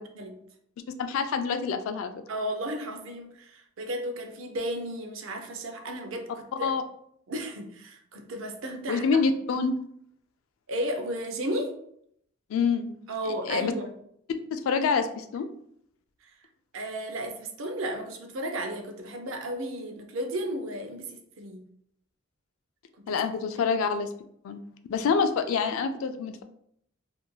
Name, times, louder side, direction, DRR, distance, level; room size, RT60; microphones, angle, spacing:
voice 1, 1.0-2.1 6.6-6.8 8.9-9.8 12.5-12.9 13.5-13.7 14.5-15.5 23.1-24.1 24.4-24.6 24.9-26.4, left 5 dB, 85° left, 9 dB, 0.3 m, -26 dB
voice 2, 2.3-6.7 7.3-9.0 10.7-11.7 13.1-13.9 16.2-16.3 16.7-21.6 23.0-23.7, right 1 dB, 75° right, 5 dB, 0.5 m, -34 dB
3.0 x 2.5 x 2.2 m, 0.70 s
head